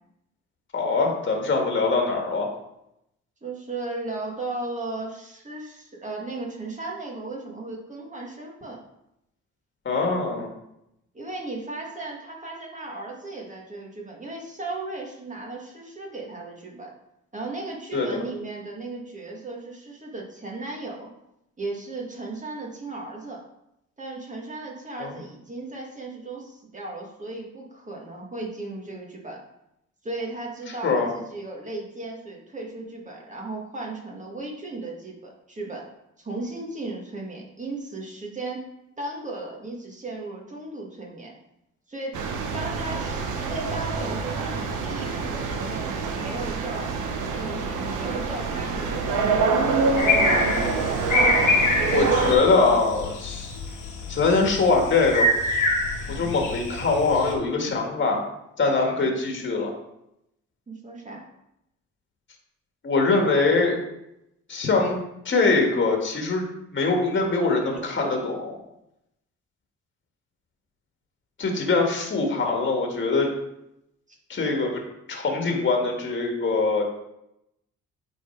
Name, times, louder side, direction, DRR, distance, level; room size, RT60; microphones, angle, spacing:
voice 1, 0.7-2.5 9.9-10.5 17.9-18.2 25.0-25.1 30.8-31.1 51.9-53.5 54.1-55.3 56.1-58.2 58.6-59.7 62.8-63.8 64.5-65.0 65.3-66.4 66.7-68.5 71.4-73.3 74.3-74.8 75.1-76.8, left 3 dB, 40° left, 1 dB, 1.8 m, -23 dB
voice 2, 3.4-8.8 11.1-16.9 17.3-21.1 21.6-23.4 24.0-29.4 30.0-35.9 36.2-38.7 39.0-41.3 41.9-42.2 42.5-46.9 47.3-49.5 50.0-51.1 56.1-56.3 59.0-59.1 60.7-61.2 74.1-74.2, right 2 dB, 25° right, -1 dB, 1.9 m, -36 dB
sound 1, 42.1-52.4, right 4 dB, 85° right, 1.1 m, -26 dB
sound 2, 50.0-57.3, left 2 dB, 85° left, 1.8 m, -25 dB
9.0 x 4.1 x 4.6 m, 0.83 s
cardioid pair, 90°, 30 cm